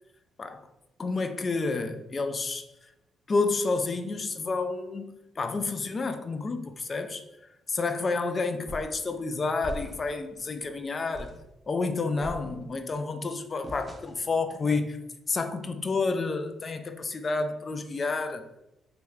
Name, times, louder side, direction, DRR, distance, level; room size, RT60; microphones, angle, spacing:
voice 1, 1.0-2.6 3.3-7.2 7.7-11.3 11.7-15.0 15.3-18.4, left 3 dB, 35° left, 9 dB, 0.3 m, -30 dB
sound 1, 8.7-9.0 9.6-10.2 10.6-10.8 11.1-11.5 12.2-12.9 13.6-14.3, right 1 dB, 25° right, 0.5 m, -41 dB
3.4 x 2.3 x 3.1 m, 0.89 s
cardioid pair, 90°, 0 cm